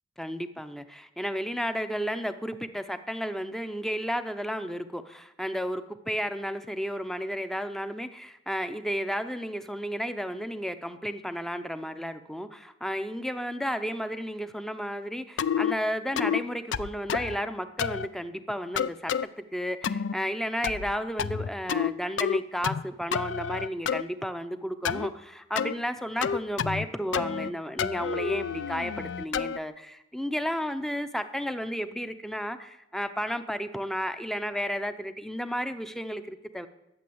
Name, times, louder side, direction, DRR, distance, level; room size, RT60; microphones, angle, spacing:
voice 1, 0.2-36.7, equal, ahead, 10 dB, 0.5 m, -33 dB
sound 1, 15.4-15.7 16.2-16.4 16.7-17.4 17.8-18.1 18.8-19.3 19.8-20.2 20.6-20.9 21.2-21.9 22.2-22.8 23.1-24.0 24.8-25.1 25.5-25.7 26.2-26.9 27.1-27.5 27.8-29.6, left 7 dB, 80° left, 0.4 m, -29 dB
11.5 x 7.7 x 7.8 m, 0.87 s
head